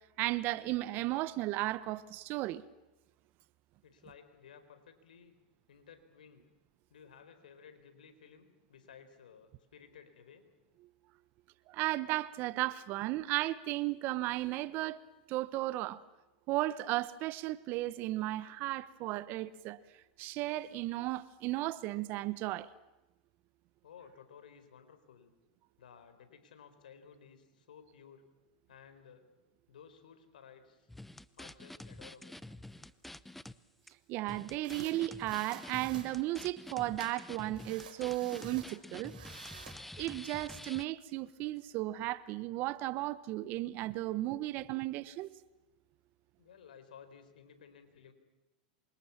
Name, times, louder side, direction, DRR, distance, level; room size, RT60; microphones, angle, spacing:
voice 1, 0.2-2.6 11.7-16.0 16.5-19.8 20.2-22.7 34.1-39.4 40.0-45.3, right 17 dB, 45° right, 1.1 m, -35 dB
voice 2, 3.8-5.3 5.7-6.5 6.9-10.5 23.8-25.3 25.8-28.2 28.7-29.3 29.7-30.9 31.4-32.4 46.4-48.1, left 7 dB, 85° left, 4.5 m, -56 dB
sound 1, 30.9-33.5 33.9-34.0 34.3-40.8, left 1 dB, 5° left, 0.8 m, -48 dB
sound 2, 32.5-32.8 33.9-34.0 34.6-35.0 35.3-36.1 37.0-37.1 37.6-38.7 39.1-39.8, right 9 dB, 80° right, 5.3 m, -52 dB
28.0 x 25.0 x 7.3 m
hypercardioid pair, 115°, 5 cm